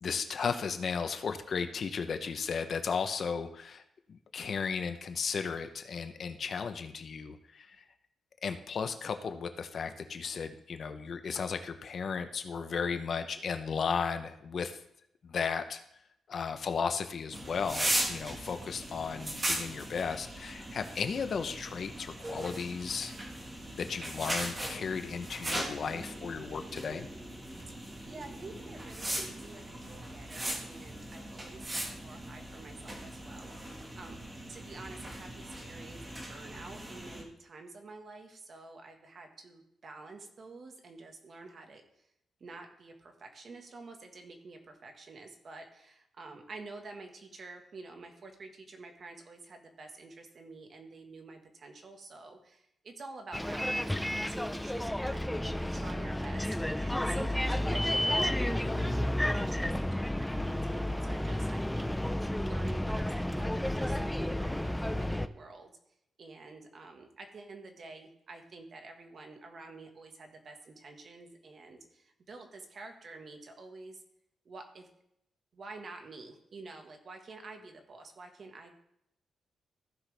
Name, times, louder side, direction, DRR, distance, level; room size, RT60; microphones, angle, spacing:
voice 1, 0.0-3.8 4.1-7.8 8.4-14.8 15.2-15.8 16.3-23.1 23.7-27.1, left 6 dB, 55° left, 9 dB, 0.7 m, -35 dB
sound 1, 17.3-37.2, right 1 dB, 20° right, 1.7 m, -39 dB
voice 2, 27.7-34.2 34.5-42.1 42.4-55.2 55.6-65.7 66.2-74.0 74.4-74.9 75.5-78.7, right 3 dB, 50° right, 4 dB, 1.5 m, -49 dB
Bus, 53.3-65.3, left 1 dB, 5° left, 0.4 m, -31 dB
15.0 x 5.9 x 3.4 m, 0.77 s
cardioid pair, 115°, 0 cm